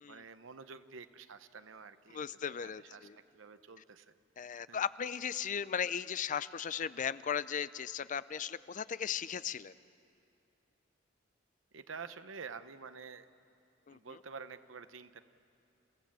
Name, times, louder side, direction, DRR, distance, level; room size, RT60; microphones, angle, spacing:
voice 1, 0.1-2.2 2.4-3.1 3.3-4.1 4.7-4.8 11.7-13.3 13.9-15.2, right 5 dB, 85° right, 11 dB, 0.8 m, -49 dB
voice 2, 2.1-3.2 4.4-9.7 13.9-14.2, left 7 dB, 40° left, 16 dB, 0.5 m, -37 dB
29.5 x 16.0 x 7.5 m, 2.6 s
head